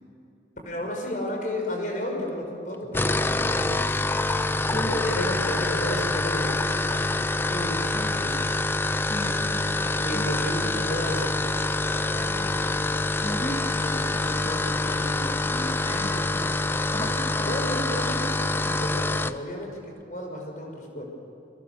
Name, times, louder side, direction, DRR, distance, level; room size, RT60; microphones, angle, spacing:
voice 1, 0.6-4.0 4.7-7.0 7.5-8.5 10.0-11.4 17.4-21.0, left 1 dB, 45° left, 2 dB, 5.9 m, -32 dB
sound 1, 2.8-19.4, left 2 dB, 10° left, 0.5 m, -26 dB
voice 2, 9.0-10.3 10.6-10.9 12.1-17.6, equal, 30° left, -1 dB, 2.3 m, -36 dB
28.5 x 23.0 x 7.1 m, 2.8 s
head